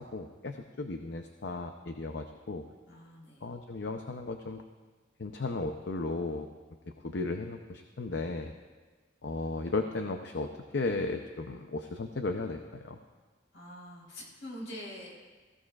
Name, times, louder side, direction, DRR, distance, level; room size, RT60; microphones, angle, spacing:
voice 1, 0.0-2.7 3.4-4.6 5.2-6.5 7.0-8.5 9.2-13.0, left 3 dB, 60° left, 5 dB, 0.6 m, -35 dB
voice 2, 2.9-3.5 13.5-15.2, equal, 80° left, -3 dB, 4.0 m, -45 dB
17.5 x 15.5 x 2.4 m, 1.4 s
head